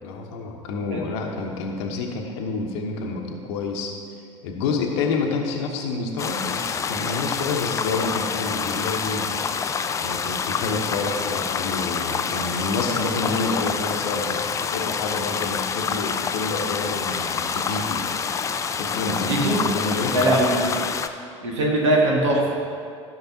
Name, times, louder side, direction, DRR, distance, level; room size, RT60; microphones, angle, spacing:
voice 1, 0.0-3.9 4.4-9.3 10.0-18.0 18.7-20.4, left 4 dB, 60° left, 2 dB, 1.0 m, -28 dB
sound 1, 6.2-21.1, left 6 dB, 20° left, 0.4 m, -27 dB
voice 2, 20.1-20.6 21.4-22.4, right 1 dB, 65° right, -2 dB, 1.7 m, -20 dB
13.5 x 6.4 x 2.8 m, 2.3 s
figure-of-eight pair, 70°, 16 cm